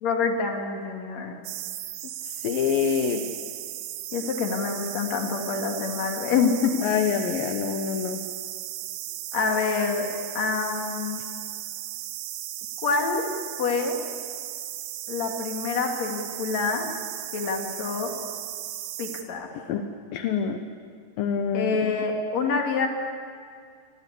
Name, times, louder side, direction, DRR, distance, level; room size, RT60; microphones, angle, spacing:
voice 1, 0.0-1.4 4.1-6.7 9.3-10.1 10.4-11.2 12.8-13.3 13.6-14.0 15.1-16.9 17.3-18.2 19.0-19.5 21.5-22.9, left 5 dB, 45° left, 3 dB, 3.5 m, -26 dB
sound 1, 1.5-19.2, right 13 dB, 85° right, 3.4 m, -36 dB
voice 2, 2.3-3.2 6.8-8.2 19.7-19.9 20.1-20.6 21.2-21.8, left 7 dB, 70° left, 7 dB, 2.5 m, -26 dB
28.5 x 24.0 x 8.5 m, 2.1 s
omnidirectional pair, 4.9 m